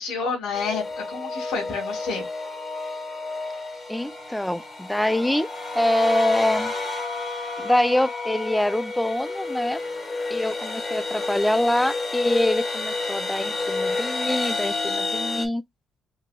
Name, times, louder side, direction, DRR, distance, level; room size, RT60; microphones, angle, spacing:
voice 1, 0.0-2.2, left 5 dB, 85° left, 2.3 m, -29 dB
sound 1, 0.5-15.5, left 3 dB, 30° left, 1.4 m, -30 dB
voice 2, 3.9-5.5 5.7-6.7 7.6-9.8 10.3-15.6, left 1 dB, 5° left, 0.4 m, -24 dB
4.6 x 2.7 x 2.3 m
cardioid pair, 90°, 0 cm